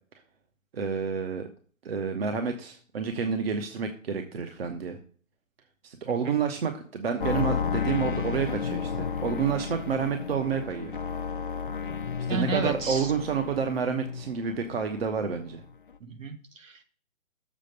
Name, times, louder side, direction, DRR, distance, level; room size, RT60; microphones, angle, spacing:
voice 1, 0.7-1.5 1.8-5.0 5.8-10.9 12.3-15.6, right 6 dB, 45° right, 6 dB, 1.1 m, -29 dB
sound 1, 7.2-14.7 14.9-15.6 15.9-16.0, left 6 dB, 40° left, 0.4 m, -32 dB
voice 2, 12.3-13.1 16.1-16.8, right 4 dB, 70° right, 6 dB, 1.8 m, -33 dB
7.5 x 4.8 x 6.6 m, 0.42 s
hypercardioid pair, 160°, 40 cm